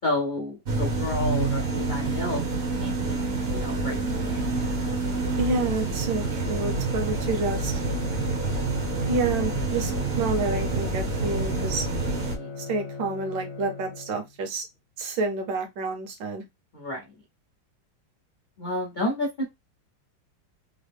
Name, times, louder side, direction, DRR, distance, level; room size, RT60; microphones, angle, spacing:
voice 1, 0.0-2.4 2.8-3.2 3.5-4.5 12.2-12.5 16.7-17.0 18.6-19.4, left 1 dB, 70° left, 0.4 m, -30 dB
sound 1, 0.7-12.4, right 3 dB, 50° right, 0.7 m, -27 dB
voice 2, 5.4-7.8 9.1-9.9 10.2-11.9 12.6-14.6 15.0-16.4, right 3 dB, 75° right, 1.6 m, -29 dB
Bowed string instrument, 6.2-14.5, left 4 dB, 55° left, 0.9 m, -39 dB
3.8 x 2.0 x 3.3 m
omnidirectional pair, 2.0 m